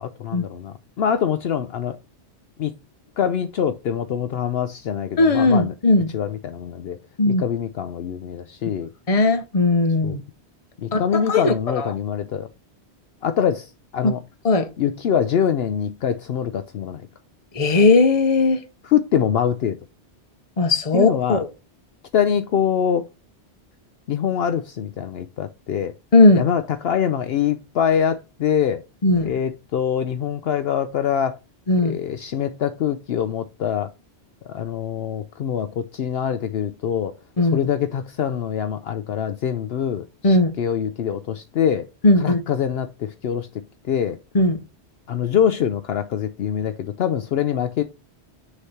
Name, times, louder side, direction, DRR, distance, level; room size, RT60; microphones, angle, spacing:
voice 1, 0.0-2.0 2.6-2.7 3.2-5.7 6.1-7.0 7.3-8.9 10.0-10.2 10.8-12.5 13.2-14.2 14.8-17.1 18.8-19.8 20.9-21.4 22.1-23.1 24.1-25.9 26.4-28.8 29.2-31.4 31.8-33.9 34.5-37.1 37.5-41.9 42.2-43.5 43.9-44.2 45.1-47.8, left 8 dB, 65° left, 0.8 m, -24 dB
voice 2, 5.2-6.1 7.2-7.4 9.1-10.2 10.9-11.9 14.0-14.1 14.4-14.7 17.5-18.6 20.6-21.5 26.1-26.4 29.0-29.3 31.7-31.9 37.4-37.7 40.2-40.5 42.0-42.4 44.3-44.6, left 2 dB, 35° left, 0.9 m, -17 dB
6.5 x 3.1 x 5.6 m
omnidirectional pair, 1.2 m